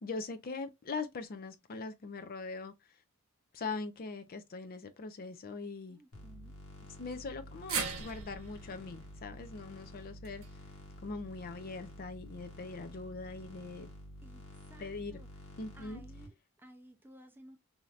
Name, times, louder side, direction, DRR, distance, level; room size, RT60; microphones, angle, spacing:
voice 1, 0.0-3.0 3.5-6.0 7.0-10.4 11.0-13.9 14.8-15.2 15.6-16.0, left 4 dB, 45° left, 0.5 m, -41 dB
voice 2, 5.9-6.6 14.2-14.4 14.7-15.3 15.7-17.6, right 1 dB, 10° right, 0.5 m, -56 dB
sound 1, 6.1-16.3, equal, 80° left, 1.2 m, -50 dB
sound 2, 7.7-12.0 12.3-12.4 13.6-13.7, right 6 dB, 70° right, 0.9 m, -42 dB
3.2 x 2.7 x 2.4 m
head